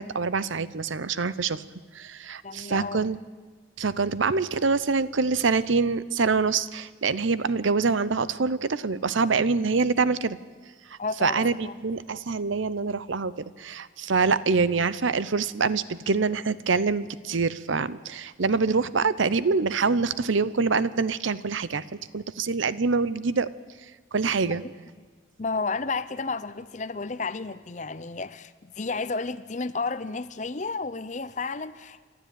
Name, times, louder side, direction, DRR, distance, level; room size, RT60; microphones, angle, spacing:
voice 1, 0.0-1.6 1.9-3.2 3.8-10.4 10.9-23.5 24.1-24.6, right 4 dB, 75° right, 0.8 m, -25 dB
voice 2, 2.4-3.0 11.0-11.8 24.6-24.7 25.4-32.0, left 4 dB, 35° left, 0.7 m, -32 dB
27.5 x 12.0 x 9.3 m
head